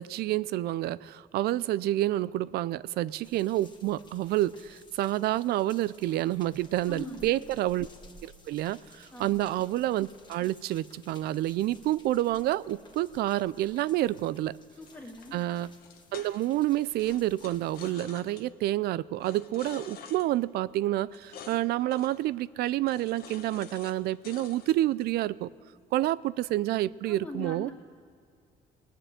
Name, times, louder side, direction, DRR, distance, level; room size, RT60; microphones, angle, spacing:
voice 1, 0.0-7.9 8.2-14.6 15.3-15.7 16.1-25.5 25.9-27.7, right 15 dB, 70° right, 19 dB, 0.4 m, -29 dB
sound 1, 3.2-17.9, left 2 dB, 25° left, 1.6 m, -56 dB
voice 2, 6.9-7.5 9.1-9.4 14.8-15.4 27.0-27.7, left 1 dB, 10° left, 0 dB, 2.2 m, -41 dB
sound 2, 14.9-16.6 17.0-18.5 19.2-20.3 21.1-21.6 21.9-22.2 22.9-24.0 24.2-25.1, left 7 dB, 65° left, 1.2 m, -48 dB
19.5 x 6.7 x 8.9 m, 2.2 s
cardioid pair, 110°, 17 cm